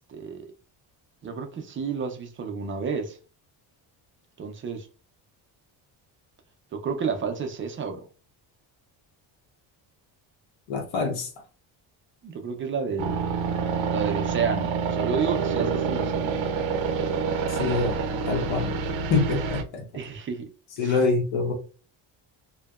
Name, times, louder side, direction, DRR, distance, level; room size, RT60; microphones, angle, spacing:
voice 1, 0.1-0.5 1.2-3.2 4.4-4.9 6.7-8.1 12.2-13.2 13.9-16.3 19.9-20.5 20.8-21.0, right 5 dB, 30° right, 0.4 m, -31 dB
voice 2, 10.7-11.3 17.5-18.0 18.3-18.8 19.1-19.8 20.8-21.5, left 3 dB, 75° left, 0.9 m, -25 dB
sound 1, 13.0-19.6, right 5 dB, 85° right, 0.6 m, -27 dB
2.6 x 2.2 x 2.3 m
cardioid pair, 125°, 46 cm